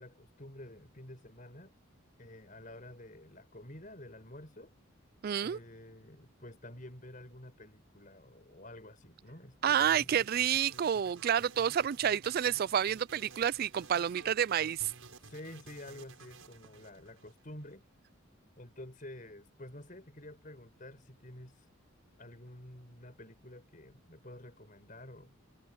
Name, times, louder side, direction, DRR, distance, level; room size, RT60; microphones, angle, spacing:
voice 1, 0.0-1.7 2.2-4.7 5.4-10.3 15.3-17.8 18.6-21.7 22.2-25.3, left 1 dB, 40° left, 5.8 m, -50 dB
voice 2, 5.2-5.6 9.6-14.9, right 9 dB, 45° right, 0.3 m, -29 dB
sound 1, 9.7-17.7, right 4 dB, 85° right, 6.7 m, -54 dB
head